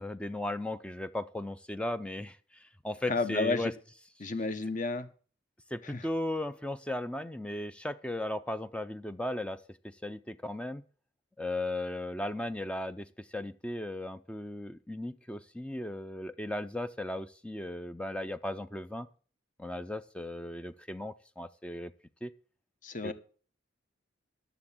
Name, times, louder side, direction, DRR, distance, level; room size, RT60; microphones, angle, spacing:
voice 1, 0.0-3.7 5.7-10.8 11.4-19.1 19.6-21.9 22.2-22.3 23.0-23.1, left 1 dB, 5° left, 12 dB, 0.4 m, -36 dB
voice 2, 3.1-3.7 4.2-5.1 5.8-6.0 22.8-23.1, left 3 dB, 40° left, 10 dB, 1.1 m, -31 dB
12.0 x 6.9 x 7.2 m, 0.41 s
head